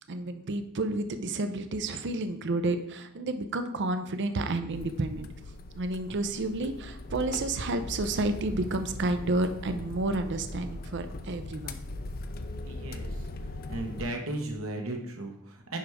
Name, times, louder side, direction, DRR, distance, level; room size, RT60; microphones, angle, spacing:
voice 1, 0.1-5.3 5.7-11.7, right 2 dB, 55° right, 9 dB, 0.6 m, -30 dB
sound 1, 4.7-14.1, left 2 dB, 45° left, 0.5 m, -40 dB
voice 2, 12.7-13.1 13.7-15.8, right 2 dB, 70° right, 2 dB, 1.3 m, -35 dB
10.0 x 3.5 x 4.8 m, 0.77 s
head